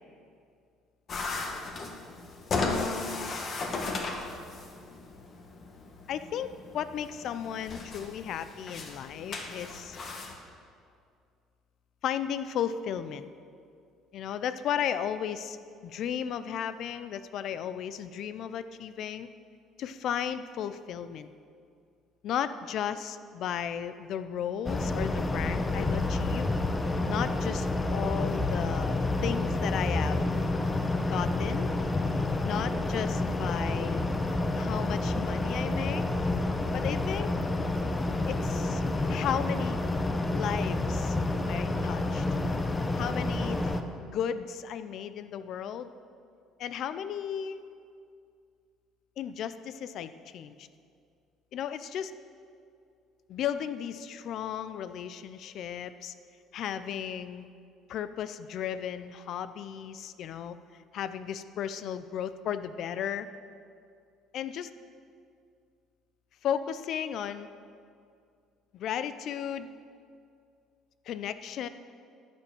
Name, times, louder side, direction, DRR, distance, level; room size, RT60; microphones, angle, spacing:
sound 1, 1.1-10.3, left 3 dB, 40° left, 1.6 m, -36 dB
voice 1, 2.5-3.3 6.1-10.0 12.0-13.3 14.1-15.6 15.8-19.3 19.8-21.3 22.2-26.5 27.1-30.2 31.0-31.7 32.4-34.1 34.6-36.0 36.7-37.3 38.3-38.8 39.1-39.8 40.3-41.2 41.5-42.2 42.9-43.7 44.0-45.9 46.6-47.6 49.2-50.7 51.5-52.1 53.3-56.1 56.5-57.5 57.9-60.6 60.9-63.3 64.3-64.7 66.4-67.5 68.7-69.7 71.1-71.7, left 9 dB, 60° left, 13 dB, 0.6 m, -34 dB
sound 2, 24.6-43.8, left 2 dB, 20° left, 0.9 m, -29 dB
11.5 x 9.1 x 7.1 m, 2.3 s
cardioid pair, 110°, 0 cm